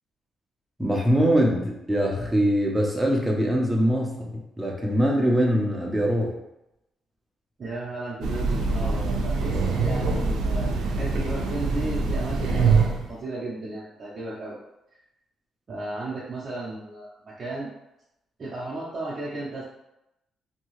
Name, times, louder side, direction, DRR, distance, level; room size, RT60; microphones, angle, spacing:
voice 1, 0.8-6.3, equal, 10° right, -1 dB, 0.7 m, -23 dB
voice 2, 7.6-14.6 15.7-17.7 18.4-19.6, right 2 dB, 45° right, -7 dB, 0.7 m, -34 dB
Train, 8.2-13.1, right 4 dB, 80° right, 0.4 m, -24 dB
2.7 x 2.3 x 3.0 m, 0.87 s
cardioid pair, 90°, 0 cm